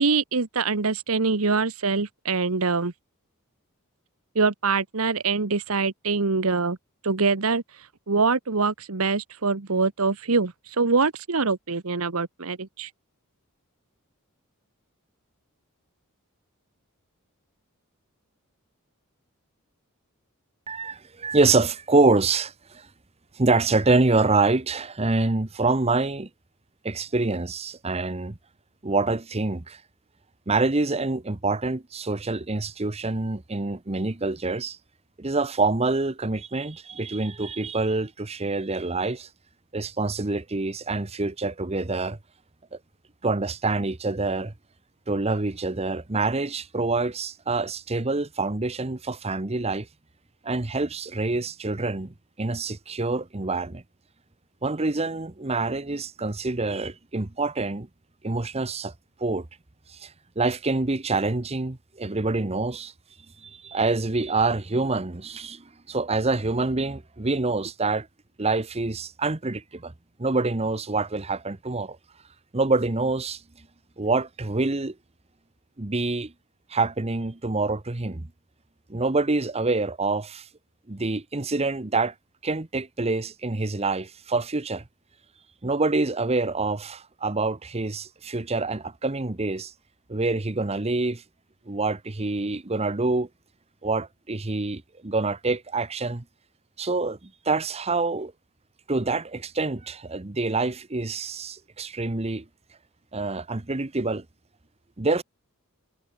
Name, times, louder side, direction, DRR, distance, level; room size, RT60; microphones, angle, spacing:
voice 1, 0.0-2.9 4.3-6.8 7.0-7.6 8.1-12.9, right 4 dB, 75° right, 1.2 m, -24 dB
voice 2, 20.7-22.9 23.4-26.3 26.8-28.4 28.8-29.8 30.5-34.8 35.2-39.3 39.7-42.2 43.2-44.5 45.1-49.9 50.4-53.8 54.6-57.9 58.2-58.9 59.2-59.5 60.0-60.1 60.4-62.9 63.4-68.1 68.4-69.9 70.2-72.0 72.5-73.4 74.0-74.9 75.8-76.3 76.7-78.2 78.9-80.4 80.9-82.1 82.4-84.8 85.6-89.7 90.1-91.2 91.7-93.3 93.8-96.2 96.8-98.3 98.9-102.4 103.1-104.2 105.0-105.2, right 3 dB, 30° right, 1.0 m, -26 dB
head